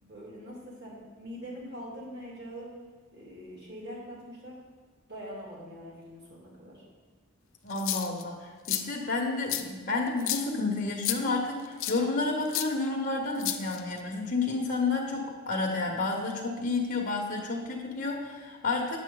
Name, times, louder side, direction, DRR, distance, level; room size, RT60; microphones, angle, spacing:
voice 1, 0.0-2.7 3.1-4.6 5.1-6.8, equal, 55° right, -4 dB, 2.6 m, -43 dB
voice 2, 7.6-19.0, left 3 dB, 45° left, -1 dB, 1.0 m, -30 dB
sound 1, 7.7-8.2 8.6-8.8 9.5-9.6 10.2-10.4 11.0-11.2 11.8-12.0 12.5-12.7 13.4-14.0, left 12 dB, 65° left, 0.6 m, -31 dB
9.3 x 7.3 x 3.9 m, 1.4 s
head